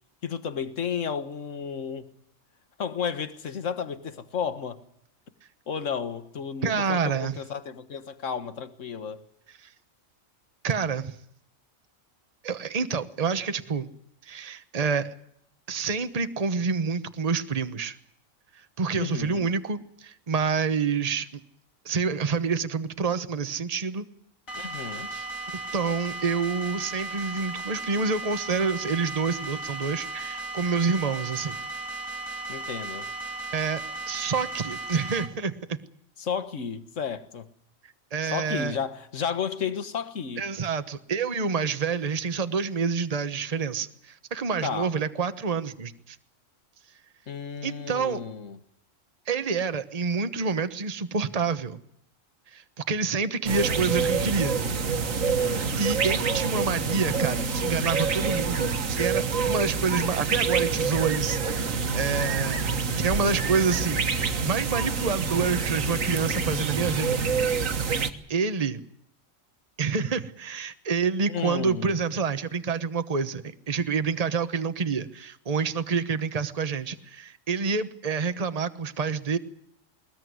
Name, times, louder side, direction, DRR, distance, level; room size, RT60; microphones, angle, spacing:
voice 1, 0.2-2.1 2.8-4.8 5.7-9.2 19.0-19.5 24.6-25.1 32.5-33.1 36.2-37.5 38.2-40.5 44.6-44.9 47.3-48.6 55.2-55.8 71.3-71.9, left 6 dB, 70° left, 1.8 m, -32 dB
voice 2, 6.6-7.4 9.6-9.7 10.6-11.1 12.4-13.9 14.2-15.1 15.7-18.0 18.8-21.4 21.8-24.1 25.1-25.3 25.7-31.6 33.5-35.8 38.1-38.8 40.4-46.2 47.6-48.2 49.3-51.8 52.5-54.6 55.8-62.6 63.0-67.2 68.3-68.8 69.8-79.4, right 5 dB, 30° right, 1.1 m, -28 dB
sound 1, 24.5-35.3, right 3 dB, 85° left, 3.5 m, -36 dB
sound 2, 53.5-68.1, right 5 dB, 75° right, 1.7 m, -27 dB
20.5 x 20.5 x 9.5 m
omnidirectional pair, 1.4 m